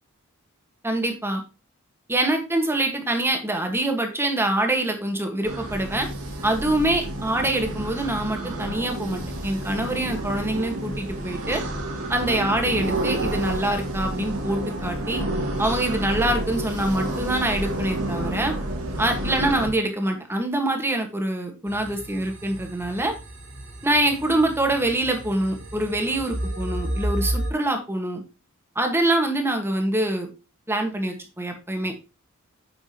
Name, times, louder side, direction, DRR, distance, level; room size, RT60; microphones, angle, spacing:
voice 1, 0.8-1.4 2.1-6.1 6.4-11.6 12.1-15.2 15.6-18.5 19.0-23.1 23.8-28.2 28.7-30.3 30.7-31.9, right 1 dB, 10° right, 4 dB, 1.5 m, -25 dB
sound 1, 5.4-19.7, right 1 dB, 85° right, 2.2 m, -30 dB
sound 2, 21.7-27.5, right 1 dB, 65° right, 3.8 m, -32 dB
8.5 x 5.9 x 2.9 m, 0.30 s
head